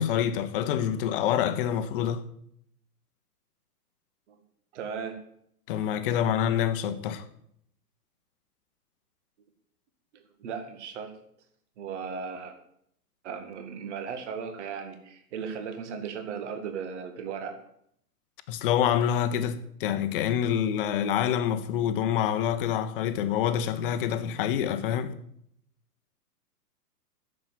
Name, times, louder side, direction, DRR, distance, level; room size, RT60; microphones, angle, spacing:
voice 1, 0.0-2.2 5.7-7.2 18.5-25.2, left 9 dB, 35° left, 1.1 m, -26 dB
voice 2, 4.7-5.2 10.1-11.1 11.8-12.5 13.2-17.6, right 6 dB, 45° right, 2.1 m, -36 dB
9.9 x 7.5 x 9.2 m
figure-of-eight pair, 115°, 47 cm